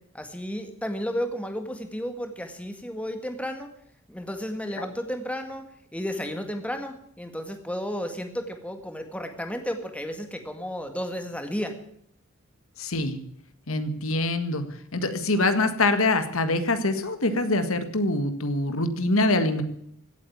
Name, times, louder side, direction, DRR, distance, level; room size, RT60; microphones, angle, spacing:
voice 1, 0.1-3.7 4.1-5.7 5.9-11.7, equal, 5° left, 6 dB, 1.8 m, -33 dB
voice 2, 12.8-13.2 13.7-14.6 14.9-19.6, left 2 dB, 80° left, 9 dB, 1.7 m, -24 dB
16.5 x 8.3 x 9.3 m, 0.70 s
head